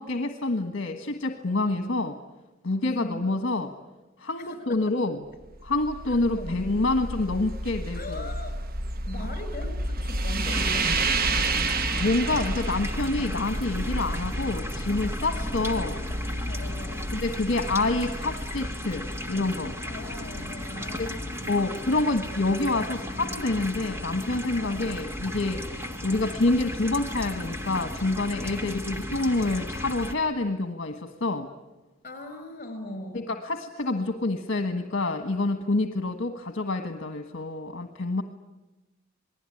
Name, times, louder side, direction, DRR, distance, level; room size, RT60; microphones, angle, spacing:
voice 1, 0.0-2.1 2.6-3.7 4.2-5.2 5.6-8.3 12.0-16.0 17.1-19.8 21.0-21.1 21.5-31.5 33.3-38.2, left 2 dB, 65° left, 6 dB, 1.5 m, -27 dB
voice 2, 1.6-2.0 2.8-3.2 4.4-4.8 6.1-6.5 7.9-8.6 9.0-11.1 15.3-15.5 16.5-17.1 19.9-21.8 28.5-28.8 32.0-33.3, left 1 dB, 40° left, 9 dB, 6.0 m, -39 dB
sound 1, 5.4-19.6, right 2 dB, 50° right, 1.0 m, -31 dB
sound 2, 10.4-30.1, left 1 dB, 15° right, 1.8 m, -35 dB
28.0 x 20.0 x 9.9 m, 1.1 s
head